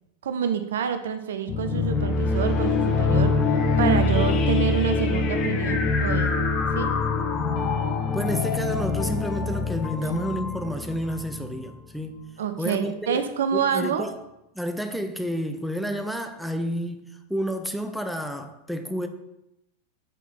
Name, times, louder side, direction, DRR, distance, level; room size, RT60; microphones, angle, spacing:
voice 1, 0.2-3.3 3.8-6.4 6.8-6.9 10.0-10.1 12.4-14.1, right 8 dB, 60° right, 9 dB, 0.5 m, -27 dB
sound 1, 1.5-11.7, left 4 dB, 35° left, 0.8 m, -24 dB
voice 2, 8.1-12.2 12.6-13.2 13.5-14.1 14.6-19.1, equal, ahead, 6 dB, 0.6 m, -30 dB
7.2 x 4.0 x 4.2 m, 0.87 s
figure-of-eight pair, 90°, 0 cm